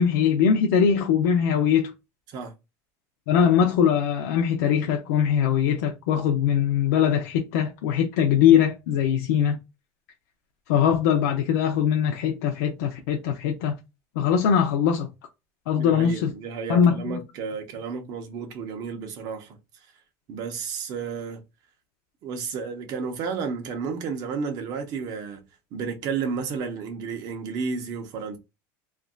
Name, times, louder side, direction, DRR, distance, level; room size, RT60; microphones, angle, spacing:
voice 1, 0.0-1.9 3.3-9.6 10.7-13.7 14.2-15.1 15.7-16.3 16.7-17.2, left 8 dB, 90° left, 0.6 m, -21 dB
voice 2, 15.8-19.5 20.3-21.4 22.2-25.4 25.7-28.4, right 5 dB, 50° right, 0.9 m, -32 dB
3.2 x 2.6 x 2.3 m
cardioid pair, 145°, 9 cm